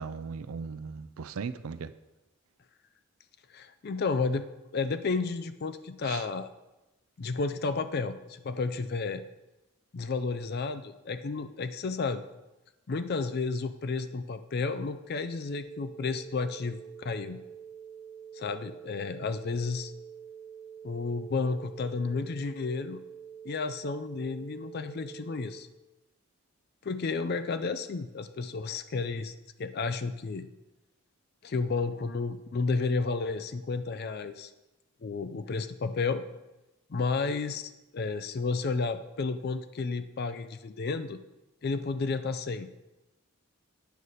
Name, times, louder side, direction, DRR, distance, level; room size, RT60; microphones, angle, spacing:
voice 1, 0.0-1.9 6.0-6.2, right 5 dB, 80° right, 14 dB, 0.4 m, -38 dB
voice 2, 3.5-4.5 4.7-6.5 7.2-9.2 9.9-12.2 12.9-17.4 18.3-19.9 20.8-23.0 23.4-25.7 26.8-30.5 31.4-34.5 35.0-36.2 36.9-41.2 41.6-42.7, left 4 dB, 45° left, 10 dB, 0.4 m, -32 dB
sound 1, 15.6-25.6, right 8 dB, 85° left, 1.8 m, -47 dB
9.2 x 6.3 x 4.1 m, 1.0 s
head